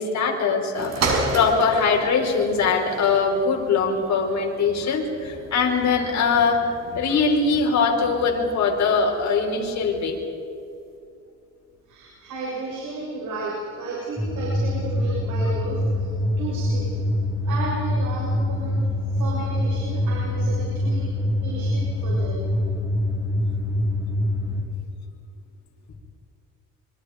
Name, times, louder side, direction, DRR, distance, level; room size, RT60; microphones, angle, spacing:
voice 1, 0.0-6.7 6.9-10.2, left 5 dB, 65° left, 1 dB, 5.1 m, -22 dB
sound 1, 0.7-10.3 11.0-11.1, right 3 dB, 60° right, 5.6 m, -34 dB
voice 2, 11.9-16.1 16.4-17.0 17.4-18.8 19.1-22.4, right 3 dB, 80° right, -4 dB, 7.0 m, -33 dB
sound 2, 14.2-24.6, left 1 dB, 15° right, 5.6 m, -24 dB
26.0 x 25.5 x 5.2 m, 2.6 s
cardioid pair, 90°, 30 cm